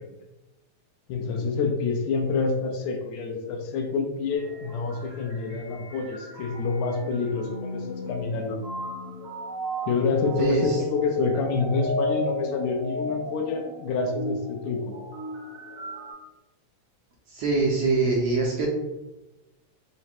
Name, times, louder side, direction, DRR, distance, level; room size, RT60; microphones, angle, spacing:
voice 1, 1.1-8.6 9.9-15.0, left 4 dB, 80° left, 3 dB, 1.8 m, -27 dB
sound 1, 4.3-16.1, equal, 55° right, 1.1 m, -35 dB
voice 2, 10.4-10.8 17.3-18.7, right 3 dB, 75° right, -3 dB, 1.5 m, -24 dB
4.9 x 2.0 x 4.3 m, 1.0 s
omnidirectional pair, 3.3 m